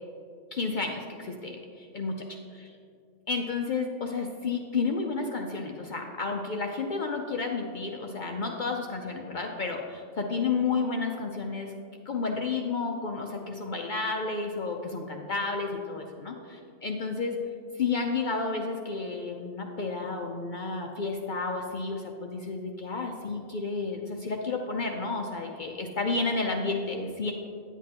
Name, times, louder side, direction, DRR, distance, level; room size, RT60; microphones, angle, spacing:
voice 1, 0.5-2.1 3.3-11.7 12.1-17.4 17.7-27.3, left 4 dB, 55° left, 2 dB, 0.5 m, -31 dB
9.8 x 8.3 x 2.8 m, 2.4 s
omnidirectional pair, 1.4 m